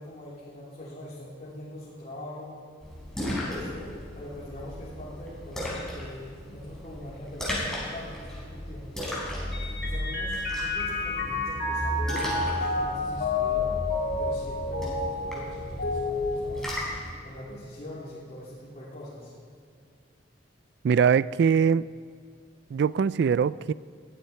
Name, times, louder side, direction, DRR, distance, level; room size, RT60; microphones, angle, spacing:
voice 1, 0.0-2.6 3.2-9.0 9.8-13.7 14.2-16.7 17.2-19.3, left 1 dB, 40° left, -10 dB, 3.7 m, -43 dB
Splash splatter, 2.8-17.1, equal, ahead, 5.0 m, -35 dB
Mallet percussion, 9.5-17.3, left 3 dB, 70° left, 2.8 m, -30 dB
voice 2, 20.8-21.9 22.7-23.7, right 6 dB, 60° right, 19 dB, 0.3 m, -22 dB
21.0 x 14.0 x 4.5 m, 2.2 s
head